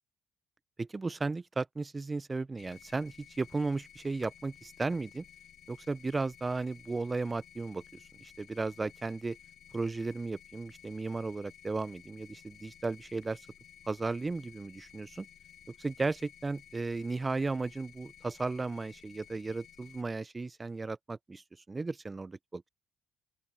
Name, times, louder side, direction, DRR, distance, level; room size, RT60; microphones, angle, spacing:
voice 1, 0.8-5.2 5.7-9.4 9.7-13.4 13.9-15.3 15.8-22.6, right 3 dB, 25° right, 0.7 m, -35 dB
sound 1, 2.6-20.0, left 9 dB, 60° left, 2.3 m, -56 dB
open air
hypercardioid pair, 50°, 0 cm